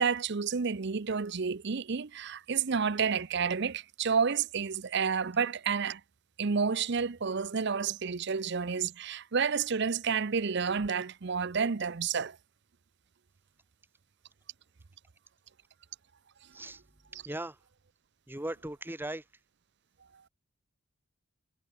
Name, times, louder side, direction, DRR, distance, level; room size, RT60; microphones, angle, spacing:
voice 1, 0.0-6.0 6.4-12.4, right 6 dB, 55° right, 0.7 m, -30 dB
voice 2, 17.2-17.6 18.3-19.2, right 1 dB, 10° right, 1.3 m, -38 dB
head